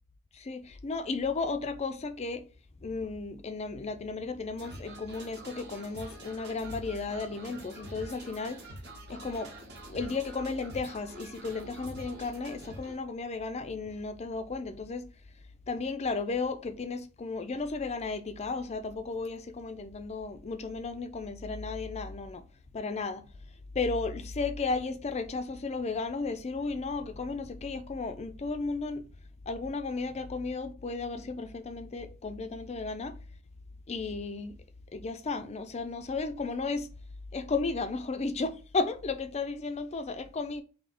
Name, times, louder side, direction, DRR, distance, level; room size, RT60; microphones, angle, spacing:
voice 1, 0.3-2.5 2.8-8.6 9.1-9.5 9.9-15.1 15.7-22.5 22.7-23.3 23.7-29.1 29.5-33.2 33.9-34.5 34.9-36.9 37.3-40.6, left 4 dB, 30° left, 0.4 m, -34 dB
sound 1, 4.6-13.0, right 1 dB, 55° right, 1.0 m, -46 dB
3.4 x 2.8 x 4.0 m
head